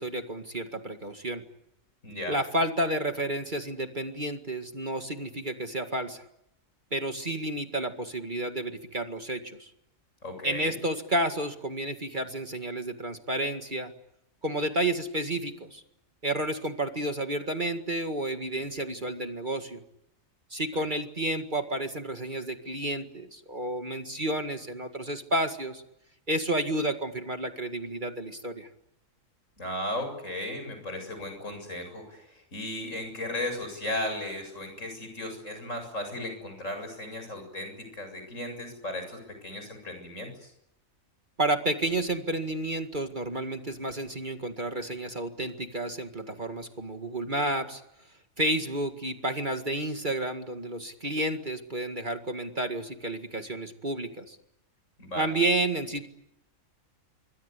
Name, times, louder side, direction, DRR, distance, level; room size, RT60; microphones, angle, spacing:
voice 1, 0.0-1.4 2.3-6.2 6.9-9.7 10.4-13.9 14.4-15.8 16.2-19.8 20.5-25.8 26.3-28.7 41.4-47.8 48.4-54.4 55.2-56.1, right 1 dB, 35° right, 6 dB, 2.1 m, -31 dB
voice 2, 2.0-2.4 10.2-10.8 20.7-20.8 29.6-40.5 55.0-55.3, left 1 dB, 65° left, 6 dB, 7.9 m, -36 dB
27.0 x 24.5 x 8.3 m, 0.81 s
omnidirectional pair, 1.4 m